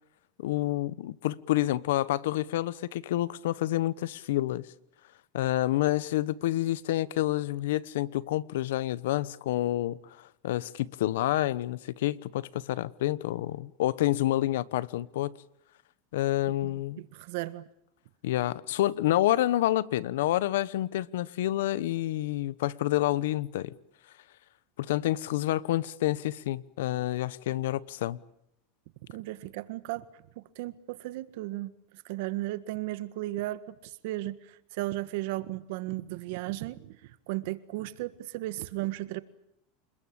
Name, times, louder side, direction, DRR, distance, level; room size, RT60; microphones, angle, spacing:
voice 1, 0.4-4.6 5.3-15.3 16.1-17.0 18.2-23.7 24.8-28.2, left 14 dB, 80° left, 1.0 m, -28 dB
voice 2, 16.6-17.6 29.1-30.1 30.4-31.7 32.0-36.9 37.3-39.2, right 17 dB, 65° right, 1.6 m, -35 dB
28.0 x 21.0 x 8.8 m
supercardioid pair, 135°, 0 cm